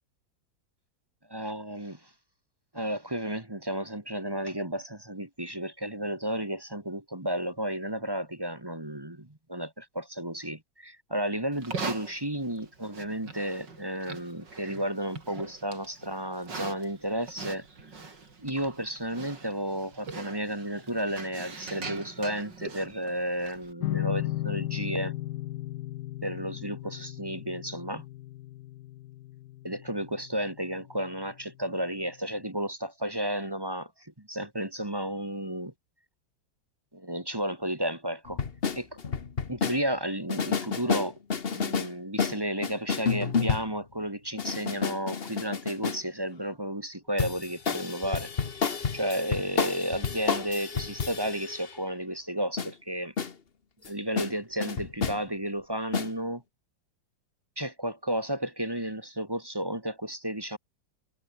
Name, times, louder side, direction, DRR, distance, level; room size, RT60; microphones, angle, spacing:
voice 1, 1.3-2.1 2.7-17.7 18.4-25.1 26.2-28.1 29.6-35.7 36.9-38.4 38.7-38.9 39.5-41.2 41.5-48.3 48.9-53.1 53.8-56.4 57.6-60.6, right 1 dB, 10° right, 1.8 m, -33 dB
Livestock farm animals working animals, 11.5-23.7, right 4 dB, 65° right, 4.4 m, -42 dB
sound 1, 23.8-31.0, left 15 dB, 70° left, 1.0 m, -36 dB
sound 2, 38.3-39.8 40.3-41.9 42.2-43.8 44.4-46.0 47.2-51.7 52.6-52.7 53.2-53.3 53.9-54.0 54.2-54.3 54.6-55.2 55.9-56.1, left 5 dB, 35° left, 1.3 m, -30 dB
omnidirectional pair, 2.1 m